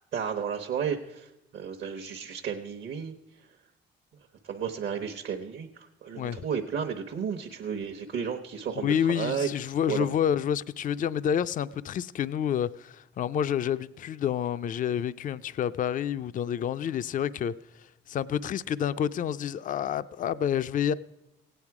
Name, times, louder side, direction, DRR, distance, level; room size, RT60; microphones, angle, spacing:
voice 1, 0.1-3.1 4.4-10.1, right 7 dB, 65° right, 1.0 m, -33 dB
voice 2, 8.8-17.5 18.1-20.9, left 9 dB, 45° left, 0.4 m, -28 dB
17.0 x 9.0 x 4.8 m
cardioid pair, 90°, 20 cm